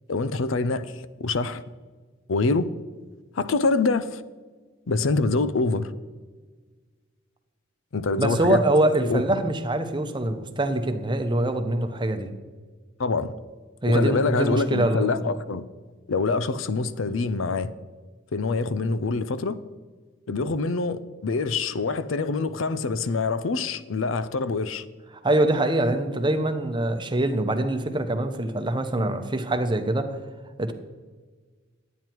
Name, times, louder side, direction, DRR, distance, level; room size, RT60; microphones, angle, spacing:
voice 1, 0.1-1.6 2.3-2.7 3.3-4.2 4.9-5.9 7.9-8.6 9.0-9.2 13.0-13.3 13.8-15.7 16.1-17.7 18.3-19.6 20.3-24.8, left 3 dB, 75° left, 0.6 m, -25 dB
voice 2, 8.2-12.3 13.8-15.3 25.2-30.2 30.6-30.7, right 1 dB, 25° right, 0.8 m, -24 dB
11.0 x 9.2 x 4.6 m
head